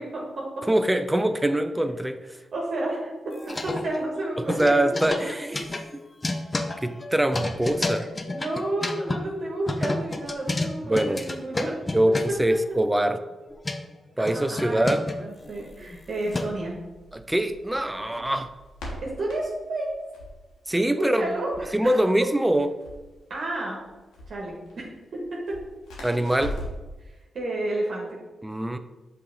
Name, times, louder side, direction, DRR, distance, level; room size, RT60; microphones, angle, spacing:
voice 1, 0.0-0.6 2.5-3.1 3.4-4.6 5.2-5.5 7.9-11.8 12.3-12.4 14.2-16.8 19.0-19.9 20.9-22.3 23.3-23.8 24.3-25.6 27.0-28.1, right 2 dB, 65° right, -3 dB, 1.3 m, -31 dB
voice 2, 0.7-2.4 4.5-5.7 6.8-8.1 10.8-11.2 11.9-13.2 14.2-15.0 17.1-18.5 20.7-21.3 21.7-22.7 26.0-26.6 28.4-28.8, right 1 dB, 15° right, 9 dB, 0.5 m, -23 dB
sound 1, 3.3-4.2 4.4-9.2 9.7-12.5 13.3-13.8 14.2-16.7, left 2 dB, 30° left, 0.7 m, -30 dB
Crackle, 15.4-26.9, left 1 dB, 90° left, 1.3 m, -42 dB
5.7 x 3.4 x 4.9 m, 1.2 s
supercardioid pair, 50°, 0 cm